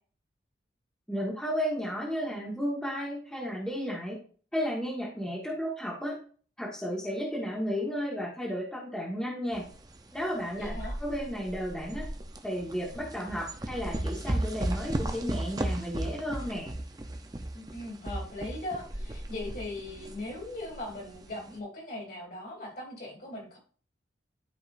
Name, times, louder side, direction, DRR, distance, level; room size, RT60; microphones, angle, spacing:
voice 1, 1.1-4.2 4.5-6.2 6.6-9.7 10.1-12.1 12.4-16.7, equal, 5° left, -5 dB, 1.7 m, -33 dB
sound 1, 9.5-21.6, right 1 dB, 20° right, 0.7 m, -36 dB
voice 2, 10.6-11.0 17.5-23.6, left 2 dB, 50° left, -1 dB, 3.2 m, -39 dB
12.5 x 5.2 x 2.6 m, 0.42 s
head